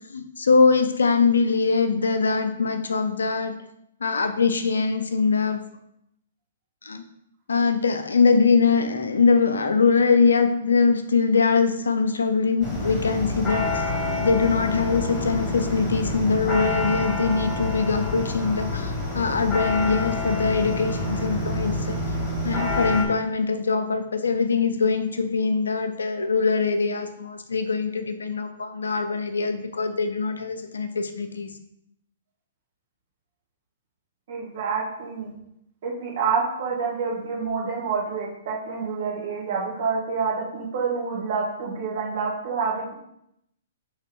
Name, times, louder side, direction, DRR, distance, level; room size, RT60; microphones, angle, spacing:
voice 1, 0.1-3.5 4.0-5.6 6.8-7.0 7.5-13.6 14.2-22.0 22.4-31.5, left 4 dB, 85° left, 7 dB, 0.5 m, -22 dB
sound 1, 12.6-23.1, left 2 dB, 10° left, 1.5 m, -27 dB
voice 2, 34.3-35.3 35.8-42.9, right 5 dB, 55° right, -3 dB, 1.6 m, -27 dB
3.4 x 3.2 x 4.5 m, 0.77 s
hypercardioid pair, 125°, 0 cm